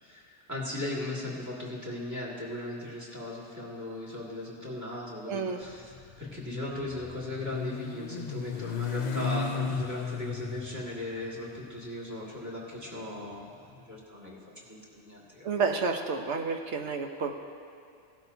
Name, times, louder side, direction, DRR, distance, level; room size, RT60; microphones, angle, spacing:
voice 1, 0.0-15.6, left 1 dB, 15° right, -6 dB, 2.2 m, -38 dB
voice 2, 5.3-5.6 15.4-17.3, right 4 dB, 70° right, 4 dB, 1.1 m, -30 dB
Motorcycle, 5.6-13.8, left 5 dB, 55° left, 0.5 m, -36 dB
17.0 x 12.0 x 2.7 m, 2.5 s
omnidirectional pair, 1.2 m